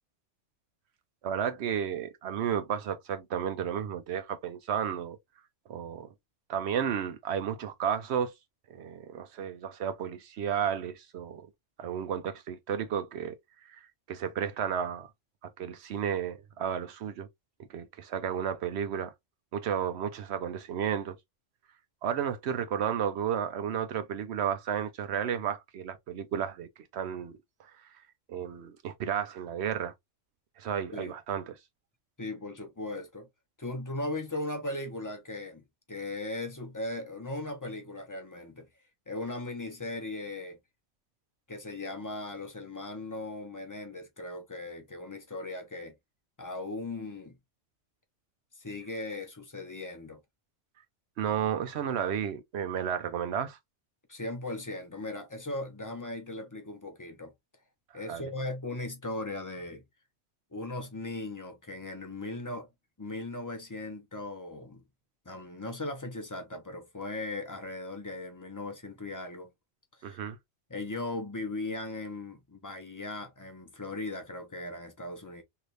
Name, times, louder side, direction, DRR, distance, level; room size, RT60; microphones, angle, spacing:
voice 1, 1.2-5.2 5.7-6.1 6.5-8.3 8.7-11.5 11.8-13.4 13.6-15.1 15.6-17.3 17.7-19.1 19.5-21.1 22.0-27.3 27.6-27.7 28.3-29.9 30.6-31.6 51.2-53.6 58.1-58.2 70.0-70.4, right 8 dB, 70° right, 0.8 m, -32 dB
voice 2, 32.2-33.3 33.6-38.7 39.1-40.6 41.5-45.9 46.4-47.4 48.6-50.2 54.1-57.3 57.9-59.8 60.5-62.7 63.0-64.8 65.3-69.5 69.9-70.2 70.7-75.4, left 2 dB, 20° left, 0.5 m, -38 dB
3.2 x 2.8 x 2.5 m
omnidirectional pair, 1.2 m